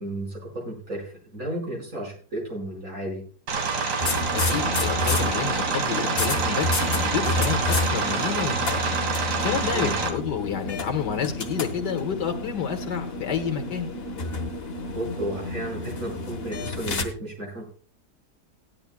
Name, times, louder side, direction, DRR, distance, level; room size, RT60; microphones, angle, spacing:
voice 1, 0.0-3.2 9.7-10.0 14.9-17.8, right 1 dB, 55° right, -3 dB, 5.5 m, -33 dB
sound 1, 3.5-10.1, right 5 dB, 75° right, 2.1 m, -26 dB
sound 2, 4.0-17.0, left 3 dB, 40° left, 1.2 m, -30 dB
voice 2, 4.3-6.7 7.0-8.9 9.4-13.9, left 7 dB, 80° left, 6 dB, 2.0 m, -29 dB
17.0 x 10.5 x 2.3 m, 0.41 s
omnidirectional pair, 1.8 m